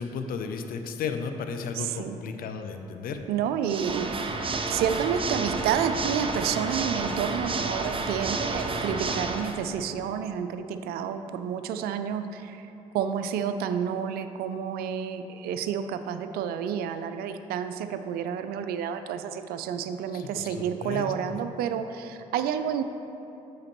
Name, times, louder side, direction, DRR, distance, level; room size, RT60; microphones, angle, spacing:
voice 1, 0.0-3.2 8.7-8.9 20.1-21.4, left 5 dB, 65° left, 7 dB, 0.6 m, -34 dB
voice 2, 1.8-2.2 3.3-4.2 4.6-12.7 12.9-22.8, right 8 dB, 70° right, 9 dB, 0.4 m, -30 dB
Water / Mechanisms, 3.6-9.6, right 3 dB, 35° right, 0.7 m, -30 dB
8.7 x 6.6 x 3.0 m, 3.0 s
hypercardioid pair, 50°, 16 cm